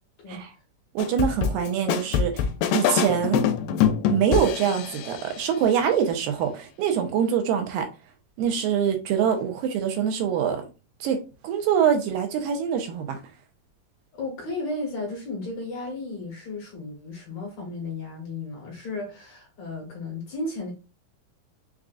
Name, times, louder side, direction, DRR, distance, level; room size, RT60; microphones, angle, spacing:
sound 1, 1.0-5.3, left 8 dB, 90° left, 2.3 m, -24 dB
voice 1, 1.0-2.4 2.7-3.5 4.1-7.9 8.4-10.6 11.0-11.2 11.4-13.2, right 8 dB, 85° right, 2.4 m, -24 dB
voice 2, 14.2-20.7, left 2 dB, 60° left, 2.1 m, -34 dB
6.1 x 2.4 x 2.4 m
omnidirectional pair, 4.0 m